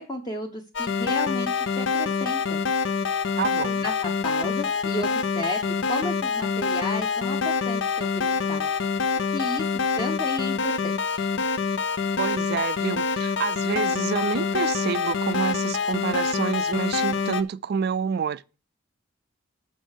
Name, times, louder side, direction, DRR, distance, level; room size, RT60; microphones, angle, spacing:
voice 1, 0.0-2.6 3.8-8.7 9.3-9.7 10.0-11.3, left 1 dB, 20° left, 0.7 m, -33 dB
sound 1, 0.7-17.4, left 5 dB, 65° left, 0.5 m, -26 dB
voice 2, 3.4-3.9 12.2-18.6, right 6 dB, 50° right, 0.3 m, -28 dB
6.4 x 6.2 x 6.3 m
head